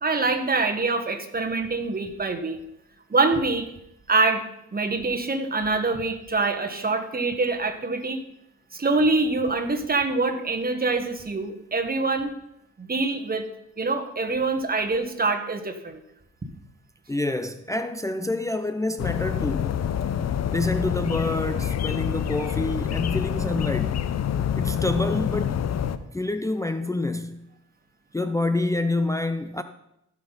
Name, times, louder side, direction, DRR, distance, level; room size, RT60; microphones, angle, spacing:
voice 1, 0.0-2.6 3.1-3.7 4.1-4.4 4.7-8.2 8.7-12.4 12.8-13.4 13.8-16.0, right 3 dB, 30° right, 1.5 m, -25 dB
voice 2, 17.1-19.8 20.5-24.1 24.6-25.6 26.1-27.5 28.1-29.6, left 2 dB, 10° left, 0.5 m, -27 dB
sound 1, 19.0-26.0, left 9 dB, 55° left, 0.7 m, -27 dB
15.5 x 5.9 x 4.2 m
cardioid pair, 70°, 32 cm